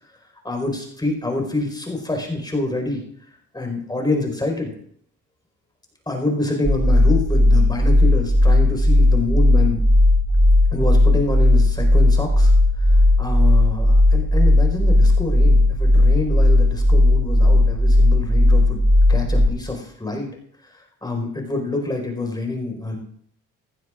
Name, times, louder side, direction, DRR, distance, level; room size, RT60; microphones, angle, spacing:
voice 1, 0.4-3.0 3.5-4.7 6.1-9.8 10.7-12.5 12.8-18.8 19.1-20.3 20.7-23.0, left 2 dB, 15° left, 2 dB, 4.7 m, -27 dB
sound 1, 6.6-19.5, left 1 dB, 30° right, 4.7 m, -15 dB
18.0 x 15.0 x 2.5 m, 0.66 s
cardioid pair, 90°, 30 cm